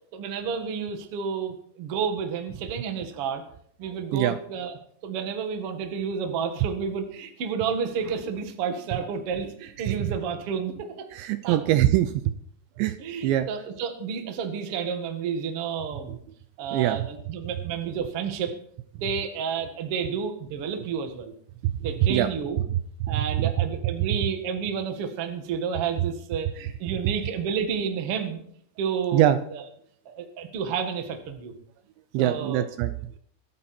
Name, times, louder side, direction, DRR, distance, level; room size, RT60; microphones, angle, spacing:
voice 1, 0.1-3.4 3.8-4.7 5.0-11.1 11.4-11.6 13.0-16.2 16.6-18.5 19.0-21.3 21.8-22.6 23.1-28.4 28.8-29.6 30.0-31.5 32.2-32.6, right 6 dB, 55° right, 6 dB, 1.6 m, -30 dB
voice 2, 3.8-4.4 9.9-10.1 11.1-12.1 12.8-13.0 13.2-13.5 16.1-16.2 16.7-17.1 21.6-22.3 22.7-23.5 29.1-29.4 32.1-32.9, right 13 dB, 80° right, 12 dB, 2.8 m, -24 dB
25.0 x 8.6 x 4.4 m, 0.65 s
omnidirectional pair, 5.5 m